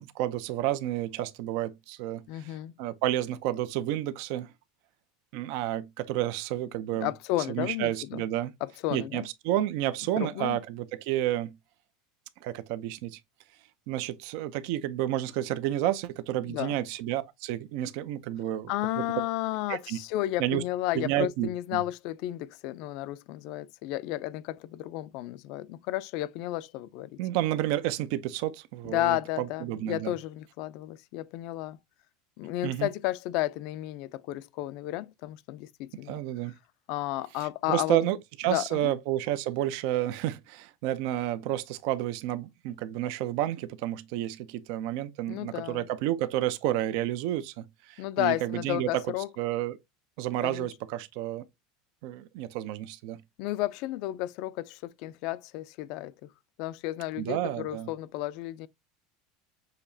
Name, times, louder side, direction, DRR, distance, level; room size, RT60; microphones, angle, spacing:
voice 1, 0.0-4.5 5.3-7.1 7.5-8.5 8.9-11.6 12.4-13.2 13.9-19.0 19.7-20.0 20.4-20.6 20.9-21.8 27.2-30.1 32.6-32.9 36.1-36.5 37.4-49.0 49.4-49.8 50.2-51.4 52.0-53.2 57.2-57.9, right 13 dB, 65° right, 0.5 m, -30 dB
voice 2, 2.3-2.7 7.0-8.2 8.6-9.3 10.2-10.6 16.5-16.8 18.7-27.2 28.8-31.8 32.4-36.2 36.9-38.0 38.5-38.9 45.3-45.9 48.0-49.3 50.4-50.7 53.4-56.3 56.6-58.7, left 16 dB, 60° left, 0.4 m, -32 dB
6.6 x 2.9 x 2.7 m
supercardioid pair, 130°, 0 cm